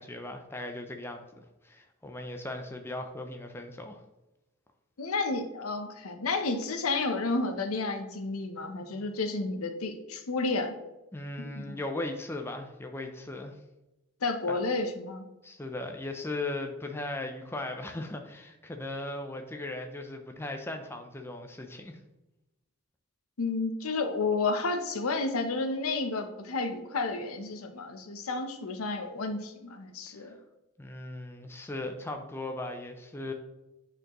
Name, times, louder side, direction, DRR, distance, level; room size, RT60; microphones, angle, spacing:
voice 1, 0.0-4.0 11.1-13.5 14.5-14.6 15.4-22.0 30.2-30.3 30.8-33.3, left 2 dB, 10° left, 4 dB, 0.4 m, -38 dB
voice 2, 5.0-10.7 11.4-11.8 14.2-15.3 23.4-30.4, left 3 dB, 85° left, 7 dB, 0.7 m, -31 dB
9.2 x 4.4 x 3.0 m, 0.99 s
head